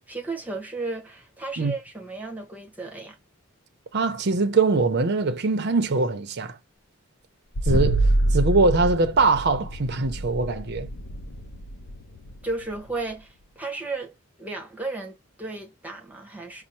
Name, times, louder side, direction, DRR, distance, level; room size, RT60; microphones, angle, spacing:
voice 1, 0.0-3.2 12.4-16.6, right 3 dB, 5° right, 1.0 m, -34 dB
voice 2, 3.9-6.6 7.6-10.9, right 3 dB, 50° right, 0.6 m, -22 dB
sound 1, 7.6-13.1, right 1 dB, 55° left, 0.5 m, -26 dB
5.3 x 2.0 x 2.8 m
head